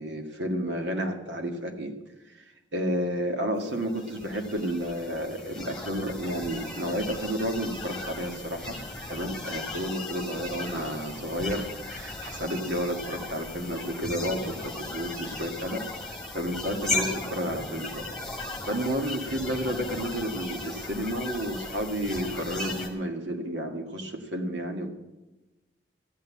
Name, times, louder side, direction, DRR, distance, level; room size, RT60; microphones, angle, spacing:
voice 1, 0.0-2.0 2.7-8.8 9.1-15.9 16.3-18.1 18.4-24.9, equal, 75° right, 4 dB, 1.9 m, -31 dB
sound 1, 3.7-22.9, left 2 dB, ahead, 2.0 m, -37 dB
13.5 x 9.1 x 7.4 m, 1.1 s
head